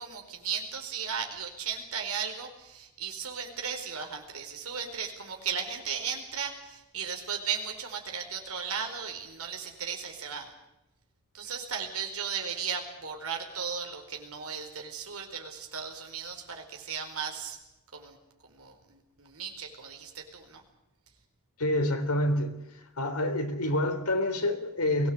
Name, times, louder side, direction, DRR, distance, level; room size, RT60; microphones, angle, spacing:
voice 1, 0.0-10.5 11.3-17.6 17.9-18.2 18.4-20.6, right 6 dB, 70° right, 3 dB, 4.8 m, -36 dB
voice 2, 21.6-22.6 23.0-25.1, left 1 dB, 80° left, 6 dB, 3.7 m, -27 dB
23.0 x 18.0 x 8.0 m, 0.96 s
head